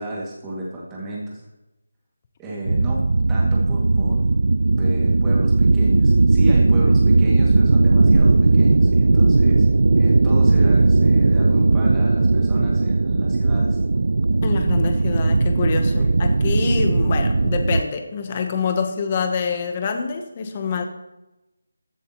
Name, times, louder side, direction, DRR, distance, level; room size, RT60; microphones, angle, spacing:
voice 1, 0.0-1.4 2.4-3.0 3.3-4.2 4.8-9.7 10.0-13.8 16.0-16.1, right 1 dB, 10° right, -5 dB, 2.2 m, -32 dB
sound 1, 2.7-17.8, right 3 dB, 65° right, 0.3 m, -17 dB
voice 2, 14.4-20.8, left 5 dB, 25° left, 6 dB, 1.0 m, -26 dB
15.0 x 10.5 x 3.1 m, 0.98 s
figure-of-eight pair, 175°, 0 cm